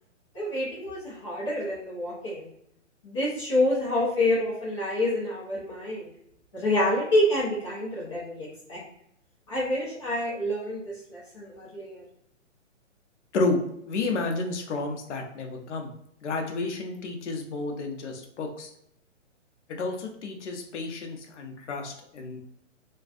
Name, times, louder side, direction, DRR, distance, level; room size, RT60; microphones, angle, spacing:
voice 1, 0.3-2.5 3.0-6.1 6.5-8.8 9.5-12.0, left 1 dB, 25° left, -8 dB, 0.6 m, -27 dB
voice 2, 13.8-15.9 16.2-18.7 19.8-22.4, left 3 dB, 65° left, 3 dB, 0.7 m, -31 dB
2.6 x 2.3 x 2.3 m, 0.72 s
hypercardioid pair, 160°, 38 cm